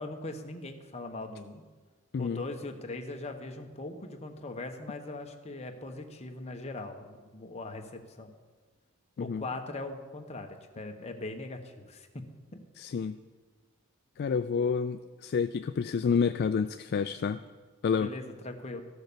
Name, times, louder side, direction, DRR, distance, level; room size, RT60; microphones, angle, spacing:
voice 1, 0.0-1.6 2.2-8.3 9.2-10.5 10.7-12.2 12.5-12.6 18.0-18.8, left 2 dB, 30° left, 4 dB, 1.0 m, -40 dB
voice 2, 12.8-13.2 14.2-17.4 17.8-18.1, left 6 dB, 50° left, 10 dB, 0.3 m, -29 dB
14.5 x 6.5 x 6.8 m, 1.4 s
head